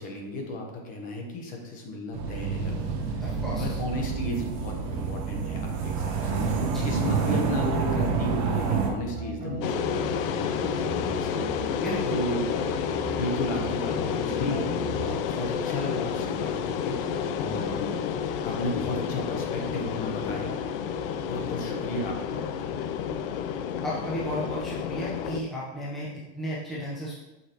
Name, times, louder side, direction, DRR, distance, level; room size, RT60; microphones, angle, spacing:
voice 1, 0.0-3.2 3.5-6.5 6.8-12.5 13.1-17.0 17.4-18.0 18.4-20.6 21.2-22.5, left 1 dB, 25° left, 1 dB, 1.1 m, -34 dB
sound 1, 2.1-8.9, right 5 dB, 45° right, 1.2 m, -28 dB
sound 2, 2.9-15.1, right 2 dB, 20° right, 2.3 m, -38 dB
voice 2, 3.2-3.6 6.7-6.9 11.8-12.2 23.8-27.1, equal, ahead, -7 dB, 0.8 m, -34 dB
sound 3, 9.6-25.4, left 7 dB, 60° left, 0.6 m, -30 dB
8.2 x 6.7 x 3.0 m, 1.0 s
supercardioid pair, 175°, 32 cm